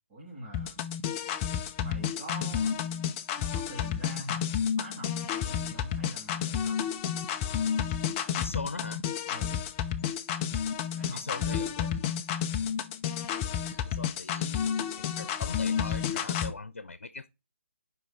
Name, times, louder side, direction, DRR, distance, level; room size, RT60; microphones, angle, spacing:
voice 1, 0.1-0.9 1.8-2.7 3.4-4.4 4.8-5.1 5.4-6.8 9.3-9.6 10.9-12.0, right 1 dB, 20° right, 2.5 m, -44 dB
sound 1, 0.5-16.5, left 8 dB, 20° left, 0.5 m, -31 dB
voice 2, 8.4-9.0 11.1-12.1 13.6-17.3, left 3 dB, 85° left, 0.7 m, -40 dB
7.6 x 5.4 x 4.2 m
hypercardioid pair, 155°, 7 cm